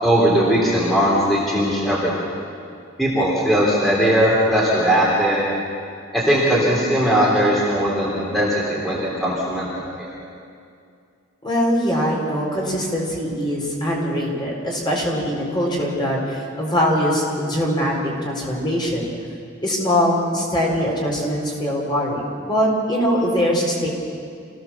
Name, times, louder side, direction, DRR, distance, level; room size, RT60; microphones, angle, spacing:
voice 1, 0.0-2.2 3.0-5.5 6.1-10.1, equal, ahead, -6 dB, 3.6 m, -19 dB
voice 2, 11.4-19.1 19.6-23.9, equal, 25° left, -3 dB, 4.7 m, -22 dB
27.0 x 16.5 x 7.3 m, 2.4 s
head